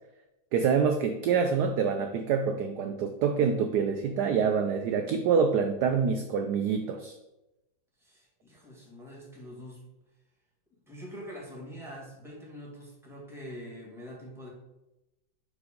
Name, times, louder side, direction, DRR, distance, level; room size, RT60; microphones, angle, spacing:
voice 1, 0.5-7.1, right 6 dB, 75° right, 6 dB, 0.9 m, -26 dB
voice 2, 8.0-9.8 10.9-14.5, equal, ahead, -3 dB, 1.8 m, -44 dB
5.0 x 4.6 x 5.1 m, 0.95 s
omnidirectional pair, 2.2 m